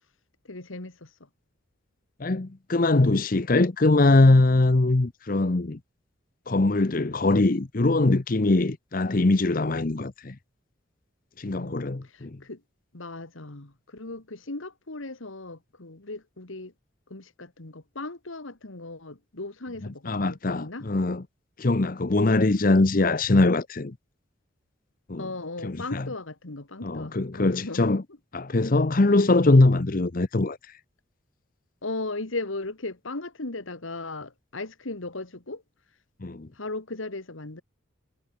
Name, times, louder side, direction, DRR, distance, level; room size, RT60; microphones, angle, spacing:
voice 1, 0.5-1.1 11.5-12.6 12.9-16.7 17.1-20.9 25.2-27.8 31.8-35.6 36.5-37.6, left 2 dB, 85° left, 2.1 m, -37 dB
voice 2, 2.2-5.8 6.5-10.4 11.4-12.4 20.1-21.2 21.6-23.9 25.1-25.2 25.6-26.0 26.8-28.0 28.3-30.6 36.2-36.5, left 2 dB, 45° left, 0.8 m, -22 dB
head